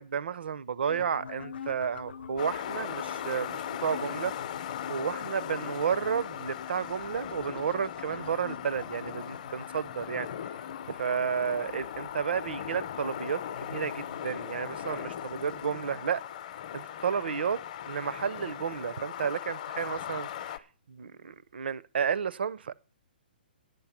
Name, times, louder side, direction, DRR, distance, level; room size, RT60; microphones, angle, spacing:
voice 1, 0.0-4.3 4.9-10.3 10.9-13.4 13.7-16.2 16.7-17.6 17.9-20.6 20.9-22.7, right 7 dB, 75° right, 0.6 m, -32 dB
sound 1, 0.9-15.7, left 7 dB, 75° left, 0.6 m, -46 dB
sound 2, 2.4-20.6, left 10 dB, 45° left, 0.7 m, -39 dB
9.4 x 7.1 x 7.2 m
hypercardioid pair, 160°, 6 cm